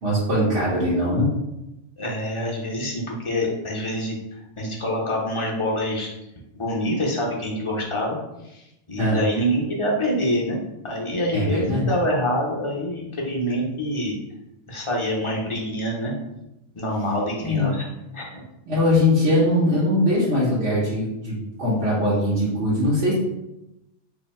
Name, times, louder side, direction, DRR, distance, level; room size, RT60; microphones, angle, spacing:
voice 1, 0.0-1.3 9.0-9.2 11.3-11.9 17.4-17.7 18.7-23.1, left 1 dB, 70° right, -9 dB, 1.3 m, -21 dB
voice 2, 2.0-4.2 4.6-6.1 6.5-8.2 8.4-10.6 10.8-14.1 14.7-16.1 16.7-17.9 18.1-18.4 18.9-19.0, equal, 30° left, -2 dB, 0.6 m, -26 dB
2.8 x 2.7 x 4.1 m, 0.91 s
omnidirectional pair, 1.2 m